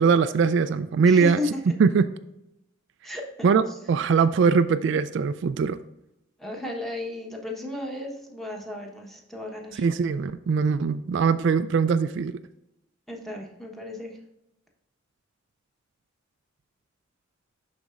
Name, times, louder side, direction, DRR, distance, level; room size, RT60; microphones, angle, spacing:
voice 1, 0.0-1.4 1.8-2.0 3.4-5.8 9.8-12.4, right 5 dB, 60° right, 12 dB, 0.3 m, -21 dB
voice 2, 1.0-1.8 3.0-3.5 6.4-9.8 13.1-14.2, left 1 dB, ahead, -1 dB, 1.1 m, -34 dB
11.0 x 4.2 x 2.5 m, 0.89 s
head